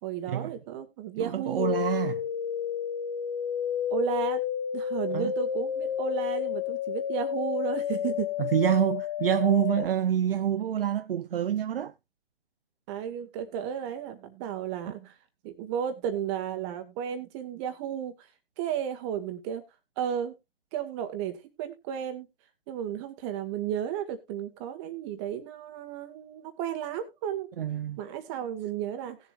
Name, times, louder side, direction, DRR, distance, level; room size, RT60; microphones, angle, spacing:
voice 1, 0.0-1.7 3.9-4.4 4.7-8.3 12.9-15.1 15.4-18.3 18.6-19.6 20.0-20.3 20.7-22.3 22.7-27.5 28.0-29.2, right 9 dB, 25° right, 1.8 m, -33 dB
voice 2, 1.1-2.2 5.1-5.3 8.4-11.9 27.6-28.0, right 9 dB, 55° right, 0.7 m, -27 dB
sound 1, 1.6-9.9, left 9 dB, 30° left, 0.7 m, -31 dB
18.5 x 7.3 x 2.4 m
hypercardioid pair, 145°, 34 cm